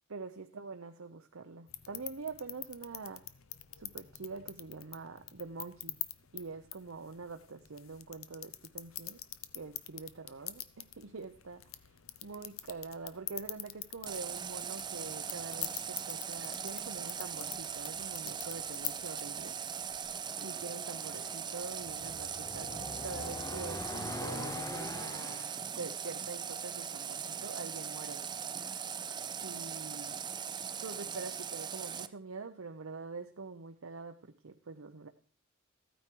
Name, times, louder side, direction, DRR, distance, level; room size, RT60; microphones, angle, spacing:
voice 1, 0.1-3.2 3.8-6.0 6.3-9.2 9.5-19.6 20.4-28.3 29.4-30.2 30.8-35.1, right 4 dB, 85° right, 6 dB, 0.8 m, -45 dB
sound 1, 1.7-20.1, left 13 dB, 85° left, 0.7 m, -46 dB
Water tap faucet, 14.1-32.1, right 7 dB, 20° right, 0.5 m, -40 dB
sound 2, 20.2-25.6, left 2 dB, 15° left, 0.7 m, -43 dB
14.0 x 9.3 x 4.6 m, 0.40 s
head